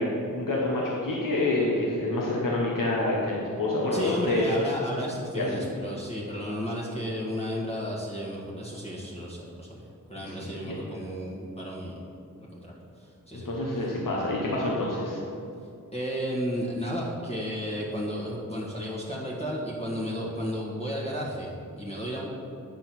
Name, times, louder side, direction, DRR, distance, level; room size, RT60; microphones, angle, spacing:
voice 1, 0.0-4.4 5.3-5.6 10.2-10.8 13.3-15.2, left 2 dB, 75° left, -4 dB, 1.1 m, -27 dB
voice 2, 3.9-12.0 12.4-13.5 15.9-22.3, equal, 20° left, -5 dB, 1.5 m, -33 dB
8.6 x 3.8 x 6.0 m, 2.5 s
wide cardioid pair, 60°, 33 cm